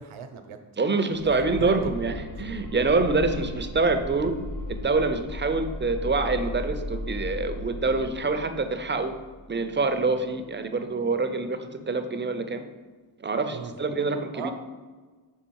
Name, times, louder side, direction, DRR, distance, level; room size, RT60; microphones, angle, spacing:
voice 1, 0.0-0.6 1.2-1.9 2.4-2.5 13.5-13.7 14.3-14.5, right 7 dB, 75° right, 7 dB, 0.8 m, -37 dB
voice 2, 0.8-4.3 4.7-9.1 9.5-12.6 13.2-14.5, right 3 dB, 25° right, 7 dB, 0.5 m, -26 dB
sound 1, 1.2-10.0, left 1 dB, 65° left, 1.7 m, -36 dB
6.3 x 3.6 x 4.6 m, 1.4 s
cardioid pair, 85°, 49 cm